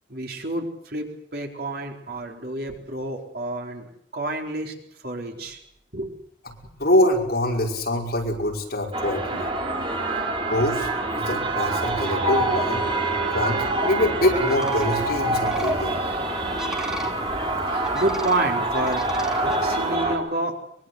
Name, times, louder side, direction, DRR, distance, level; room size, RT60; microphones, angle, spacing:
voice 1, 0.1-1.1 1.3-4.7 5.0-5.6 5.9-6.1 17.7-20.6, right 1 dB, 55° right, 2 dB, 4.2 m, -29 dB
voice 2, 6.8-9.5 10.5-12.9 13.3-16.2, left 1 dB, 55° left, 0 dB, 5.5 m, -24 dB
sound 1, 8.9-20.2, right 2 dB, 30° right, 3.4 m, -25 dB
sound 2, 14.3-19.9, equal, 5° right, 2.7 m, -37 dB
23.5 x 22.0 x 8.0 m, 0.70 s
head